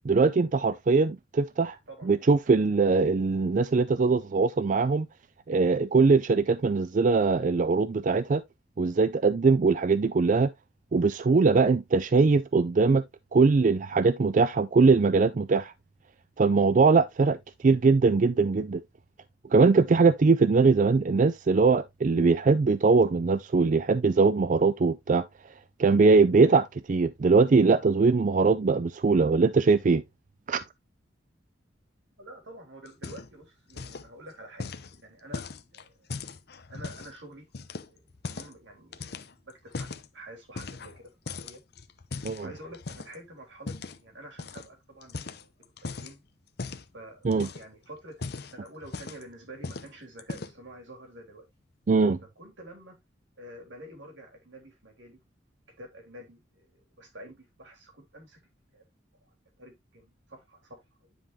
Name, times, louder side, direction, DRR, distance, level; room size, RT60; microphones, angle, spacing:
voice 1, 0.0-1.8 2.0-5.1 5.5-8.4 8.8-10.5 10.9-13.0 13.3-15.7 16.4-18.8 19.5-25.2 25.8-30.0 30.5-30.6 42.2-42.5 47.2-47.5 51.9-52.2, right 4 dB, 45° right, 0.4 m, -22 dB
voice 2, 32.2-35.5 35.7-36.1 36.7-37.5 37.8-38.0 38.3-41.6 42.4-45.5 45.8-46.2 46.9-51.5 52.4-53.0 53.4-55.2 55.8-58.4 58.7-58.9 59.2-61.1, right 1 dB, 80° right, 3.5 m, -48 dB
sound 1, 32.9-33.4 33.7-34.1 34.6-37.1 37.5-38.6 38.9-40.1 40.5-41.0 41.3-43.2 43.7-44.0 44.4-44.7 45.0-46.1 46.6-46.9 47.3-47.7 48.1-49.3 49.6-49.9 50.2-50.7, left 4 dB, 60° left, 0.7 m, -39 dB
9.8 x 5.4 x 2.8 m
head